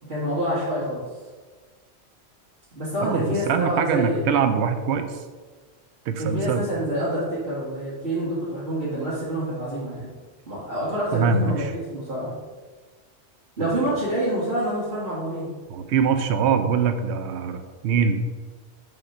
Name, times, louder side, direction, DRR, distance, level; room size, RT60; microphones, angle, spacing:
voice 1, 0.0-1.0 2.7-4.4 6.2-10.1 10.5-12.3 13.6-15.5, right 1 dB, 65° right, -11 dB, 2.2 m, -27 dB
voice 2, 3.0-5.2 6.1-6.7 11.1-11.7 13.6-13.7 15.7-18.2, right 6 dB, 80° right, 8 dB, 0.9 m, -23 dB
7.0 x 3.6 x 5.7 m, 1.4 s
omnidirectional pair, 1.1 m